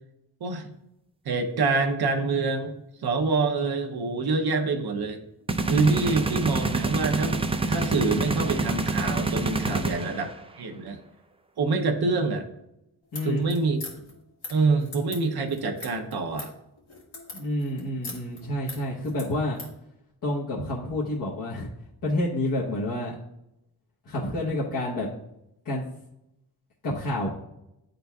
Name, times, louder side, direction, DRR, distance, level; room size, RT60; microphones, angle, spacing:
voice 1, 0.4-0.7 1.3-2.7 3.0-5.2 5.7-10.3 10.5-11.0 11.6-12.5 13.2-13.8 14.5-16.5, right 3 dB, 65° right, 4 dB, 0.8 m, -26 dB
sound 1, 5.5-10.3, right 3 dB, 15° right, 0.4 m, -27 dB
sound 2, 13.0-19.8, left 3 dB, 75° left, 1.9 m, -42 dB
voice 2, 17.3-19.6 20.2-21.7 22.0-23.2 24.0-25.1 25.6-25.8 26.8-27.3, left 1 dB, 55° left, -6 dB, 1.1 m, -28 dB
10.0 x 3.9 x 2.3 m, 0.84 s
wide cardioid pair, 110°, 41 cm